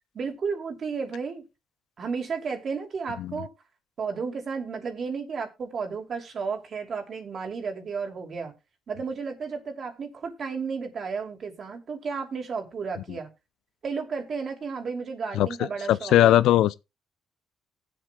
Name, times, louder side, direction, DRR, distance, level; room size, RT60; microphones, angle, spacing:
voice 1, 0.1-1.4 2.0-3.5 4.0-8.5 8.9-13.3 13.8-16.4, right 5 dB, 50° right, 2.9 m, -33 dB
voice 2, 15.3-16.8, left 13 dB, 85° left, 0.5 m, -20 dB
19.5 x 7.6 x 2.3 m
cardioid pair, 90°, 0 cm